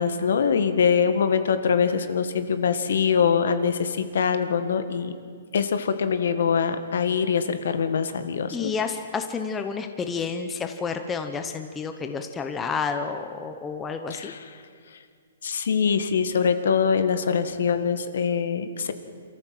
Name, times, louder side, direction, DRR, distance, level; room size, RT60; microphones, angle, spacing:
voice 1, 0.0-5.1 5.5-8.7 14.1-14.4 15.4-18.9, left 6 dB, 70° left, 10 dB, 1.8 m, -23 dB
voice 2, 8.5-14.3, left 5 dB, 10° left, 6 dB, 0.8 m, -30 dB
27.5 x 14.5 x 7.7 m, 2.1 s
hypercardioid pair, 170°, 0 cm